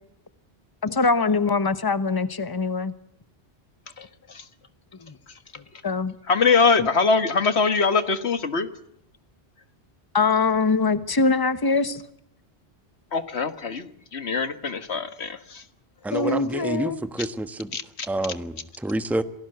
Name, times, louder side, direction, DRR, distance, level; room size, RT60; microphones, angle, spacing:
voice 1, 0.8-2.9 5.0-5.1 5.8-6.1 6.8-6.9 10.1-12.0 16.1-17.0, left 4 dB, 20° left, 13 dB, 1.1 m, -23 dB
voice 2, 4.0-4.4 6.3-8.7 13.1-15.6 17.7-18.1, left 4 dB, 80° left, 11 dB, 1.8 m, -23 dB
voice 3, 16.0-17.7 18.1-19.2, right 1 dB, ahead, 11 dB, 1.1 m, -28 dB
27.0 x 18.5 x 8.0 m, 0.74 s
omnidirectional pair, 1.1 m